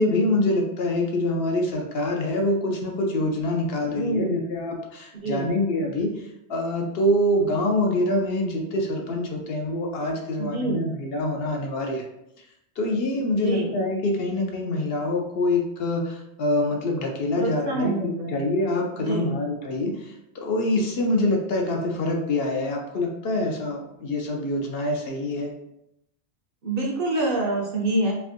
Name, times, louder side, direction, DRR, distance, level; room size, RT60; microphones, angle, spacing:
voice 1, 0.0-6.1 6.5-12.0 12.8-25.5, left 1 dB, 65° left, 1 dB, 0.8 m, -25 dB
voice 2, 3.9-4.4 5.2-5.6 10.4-11.0 13.3-13.8 17.4-18.4 19.0-19.4 26.6-28.1, right 2 dB, 60° right, 0 dB, 0.8 m, -26 dB
3.3 x 2.5 x 2.5 m, 0.82 s
omnidirectional pair, 1.1 m